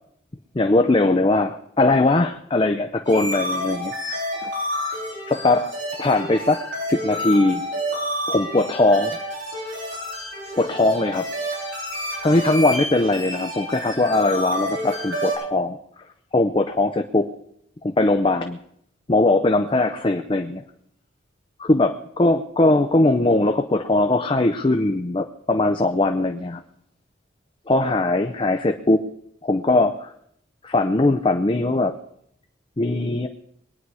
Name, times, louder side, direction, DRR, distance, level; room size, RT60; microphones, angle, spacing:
voice 1, 0.5-3.9 4.4-4.5 5.3-5.7 6.0-6.6 6.9-7.6 8.3-9.2 10.6-11.3 12.2-15.8 16.3-17.3 17.8-18.6 19.1-20.6 21.6-26.6 27.7-29.0 29.4-30.1 30.6-31.9 32.8-33.3, left 2 dB, 25° left, 6 dB, 0.5 m, -20 dB
sound 1, 3.0-15.3, equal, 75° right, 7.4 m, -29 dB
22.0 x 9.7 x 4.8 m, 0.71 s
head